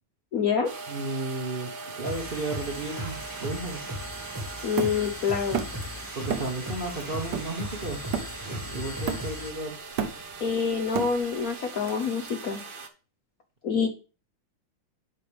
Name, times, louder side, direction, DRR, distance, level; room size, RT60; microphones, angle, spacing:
voice 1, 0.3-0.7 4.6-5.6 10.4-12.6 13.6-13.9, left 6 dB, 55° left, 3 dB, 1.0 m, -26 dB
sound 1, 0.6-12.9, right 4 dB, 80° right, 0.4 m, -41 dB
voice 2, 0.9-3.8 6.1-8.0 8.4-9.8, right 2 dB, 35° right, 1 dB, 0.9 m, -33 dB
sound 2, 2.0-9.6, equal, 10° right, 1.4 m, -37 dB
Hammer, 4.8-5.9 6.3-6.6 7.0-8.6 9.1-9.5 9.8-11.5, right 7 dB, 60° right, 1.4 m, -32 dB
10.5 x 5.6 x 3.4 m, 0.33 s
omnidirectional pair, 2.4 m